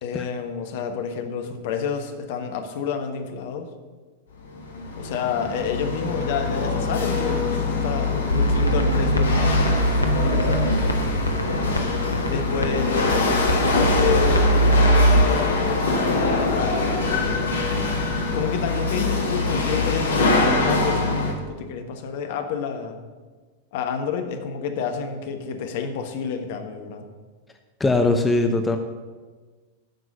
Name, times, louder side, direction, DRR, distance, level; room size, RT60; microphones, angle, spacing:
voice 1, 0.0-3.7 4.9-11.3 12.3-17.7 18.3-23.0 23.7-27.1, left 6 dB, 50° left, 6 dB, 1.2 m, -29 dB
Chatter / Hiss / Rattle, 4.4-21.3, left 3 dB, 65° left, 1.6 m, -23 dB
sound 1, 8.3-15.2, right 1 dB, 85° left, 0.9 m, -22 dB
voice 2, 27.8-28.8, left 2 dB, 10° left, 6 dB, 0.7 m, -20 dB
9.1 x 6.1 x 6.9 m, 1.4 s
figure-of-eight pair, 90°, 0 cm